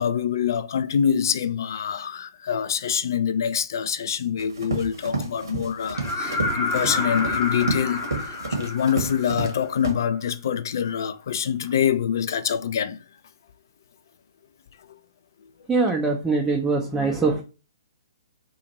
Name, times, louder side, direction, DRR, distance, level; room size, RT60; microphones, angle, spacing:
voice 1, 0.0-13.0, left 8 dB, 55° left, 0.3 m, -25 dB
Run, 4.4-9.6 9.8-9.9, right 3 dB, 70° right, 1.0 m, -30 dB
sound 1, 5.9-9.7 11.6-11.7, left 3 dB, 25° left, 0.8 m, -29 dB
voice 2, 15.7-17.4, right 4 dB, 10° right, 0.4 m, -22 dB
2.9 x 2.4 x 4.1 m
figure-of-eight pair, 125°, 2 cm